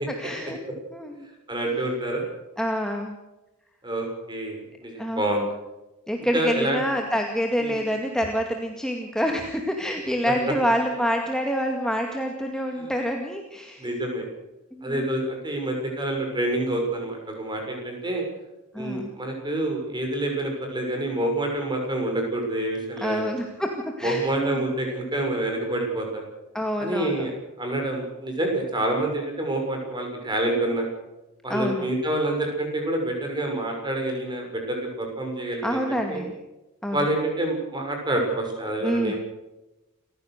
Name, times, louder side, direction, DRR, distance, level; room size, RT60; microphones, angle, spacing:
voice 1, 0.2-0.6 0.9-1.3 2.6-3.1 5.0-5.5 6.1-13.9 14.7-15.1 18.7-19.1 23.0-24.7 26.5-27.3 31.5-31.9 35.6-36.3 36.8-37.1 38.8-39.1, equal, 5° left, 2 dB, 2.1 m, -27 dB
voice 2, 1.5-2.2 3.8-5.4 6.3-6.8 7.6-7.8 10.2-10.3 12.8-12.9 13.8-14.3 14.8-18.2 18.8-23.3 24.0-26.2 26.8-27.3 27.6-30.9 31.4-36.2 36.9-39.1, right 1 dB, 20° right, 2 dB, 6.6 m, -27 dB
29.5 x 15.5 x 6.7 m, 1.0 s
head